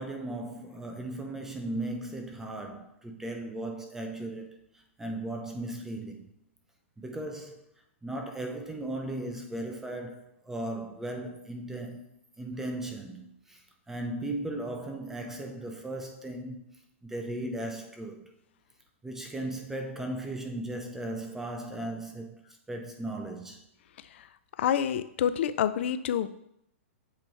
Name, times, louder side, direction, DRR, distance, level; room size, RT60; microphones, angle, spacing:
voice 1, 0.0-4.6 5.0-6.3 7.0-7.6 8.0-12.1 12.4-13.6 13.9-16.7 17.0-18.3 19.0-22.4 22.7-23.6, right 1 dB, 5° right, 0.4 m, -37 dB
voice 2, 24.6-26.3, left 9 dB, 60° left, 0.4 m, -27 dB
7.6 x 3.0 x 4.4 m
hypercardioid pair, 160°, 7 cm